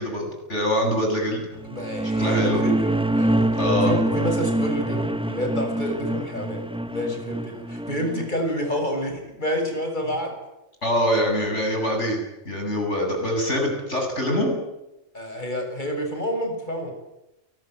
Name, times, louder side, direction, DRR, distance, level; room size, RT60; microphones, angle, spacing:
voice 1, 0.0-1.4 2.2-2.6 3.6-4.0 10.8-12.2 12.4-14.5, equal, 70° left, 2 dB, 8.4 m, -24 dB
voice 2, 1.6-10.4 15.1-16.9, equal, 40° left, 5 dB, 6.9 m, -29 dB
sound 1, 1.6-8.3, right 1 dB, 5° right, 0.8 m, -25 dB
29.0 x 20.5 x 9.3 m, 0.92 s
omnidirectional pair, 1.2 m